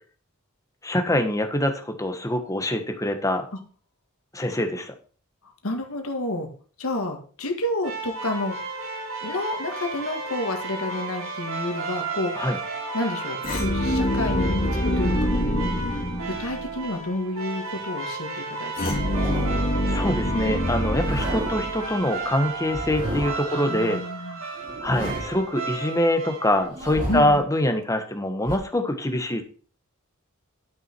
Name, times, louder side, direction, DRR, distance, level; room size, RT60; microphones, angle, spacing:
voice 1, 0.8-3.4 4.3-4.9 12.4-12.6 19.9-24.0 24.8-29.4, left 1 dB, 15° left, 6 dB, 1.3 m, -24 dB
voice 2, 5.6-6.5 6.8-8.6 9.2-12.3 12.9-15.3 16.4-19.6 23.5-24.5 27.1-27.4, left 1 dB, 75° left, 4 dB, 1.8 m, -30 dB
sound 1, 7.8-26.7, right 3 dB, 80° right, 2.6 m, -33 dB
sound 2, 13.4-16.7 18.8-22.0, equal, 45° left, 3.0 m, -25 dB
sound 3, 19.0-19.7 20.8-21.8 22.7-23.6 24.6-25.5 26.5-27.4 28.4-28.6, right 1 dB, 40° right, 3.6 m, -32 dB
11.0 x 6.2 x 4.5 m, 0.42 s
head